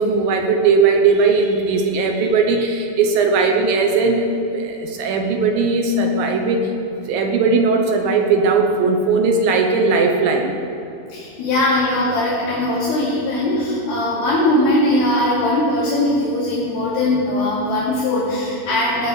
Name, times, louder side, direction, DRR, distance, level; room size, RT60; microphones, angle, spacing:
voice 1, 0.0-6.7 7.0-10.6, right 4 dB, 70° right, 3 dB, 2.6 m, -18 dB
voice 2, 11.1-19.1, left 1 dB, 75° left, -9 dB, 4.2 m, -20 dB
18.5 x 8.3 x 4.9 m, 2.8 s
omnidirectional pair, 4.4 m